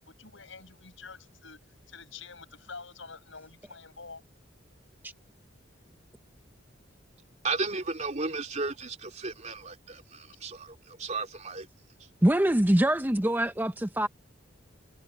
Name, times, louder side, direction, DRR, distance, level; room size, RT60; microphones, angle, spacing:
voice 1, 0.2-1.6 1.9-4.2, left 4 dB, 75° left, 6.9 m, -47 dB
voice 2, 7.4-11.7, right 3 dB, 40° right, 3.0 m, -34 dB
voice 3, 12.2-14.1, right 1 dB, 10° right, 0.7 m, -24 dB
head